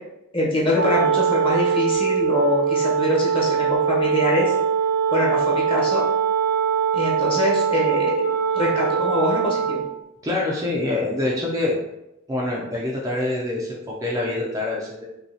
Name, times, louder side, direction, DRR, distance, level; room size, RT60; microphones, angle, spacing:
voice 1, 0.3-4.5 5.1-6.0 6.9-8.3 8.5-9.8, left 2 dB, 25° left, -5 dB, 1.0 m, -24 dB
Wind instrument woodwind instrument, 0.7-9.9, right 7 dB, 70° right, 0.5 m, -22 dB
voice 2, 10.2-11.8 12.3-15.0, left 2 dB, 15° right, -4 dB, 0.5 m, -25 dB
5.3 x 2.3 x 2.8 m, 0.89 s
head